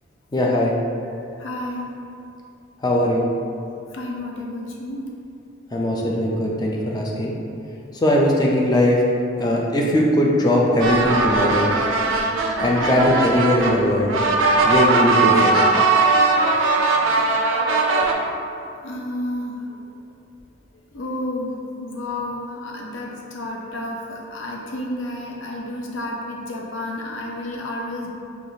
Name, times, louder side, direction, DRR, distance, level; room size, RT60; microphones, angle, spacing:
voice 1, 0.3-0.8 2.8-3.3 5.7-7.3 8.0-9.0 9.4-11.7 12.6-14.1 14.6-15.6, left 1 dB, 20° left, -2 dB, 0.4 m, -19 dB
voice 2, 1.4-1.9 3.9-5.0 16.2-16.5 17.1-17.4 18.8-19.9 20.9-28.1, left 1 dB, 70° left, -1 dB, 0.5 m, -31 dB
sound 1, 10.8-18.1, right 3 dB, 80° right, 0.4 m, -19 dB
4.5 x 2.4 x 2.7 m, 2.5 s
head